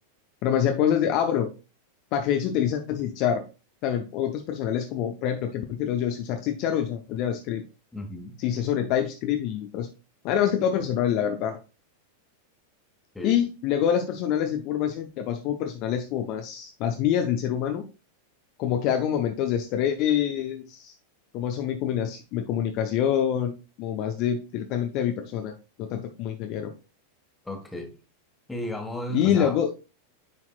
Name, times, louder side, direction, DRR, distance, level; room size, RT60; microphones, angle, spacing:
voice 1, 0.4-1.5 2.1-3.4 3.8-7.6 8.4-9.9 10.2-11.6 13.2-17.8 18.6-20.9 21.3-23.5 23.8-25.5 25.8-26.7 29.1-29.8, left 9 dB, 40° left, 5 dB, 0.6 m, -26 dB
voice 2, 7.9-8.3 13.1-13.3 27.4-27.9 28.5-29.6, equal, 5° left, 3 dB, 1.5 m, -34 dB
9.7 x 4.4 x 2.4 m, 0.31 s
figure-of-eight pair, 90°, 0 cm